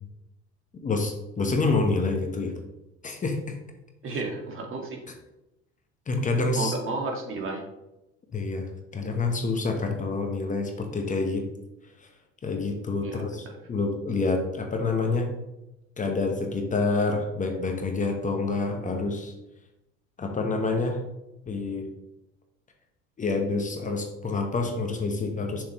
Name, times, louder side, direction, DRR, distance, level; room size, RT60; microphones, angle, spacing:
voice 1, 0.7-2.5 3.0-3.5 6.1-6.7 8.3-11.5 12.0-12.1 12.4-15.3 16.0-19.3 20.2-21.0 21.5-21.9 23.2-25.6, left 3 dB, 25° left, 3 dB, 1.0 m, -27 dB
voice 2, 4.0-5.0 6.6-7.6 13.0-13.6, right 3 dB, 45° right, 2 dB, 1.8 m, -32 dB
7.0 x 6.5 x 3.1 m, 0.92 s
cardioid pair, 110°, 30 cm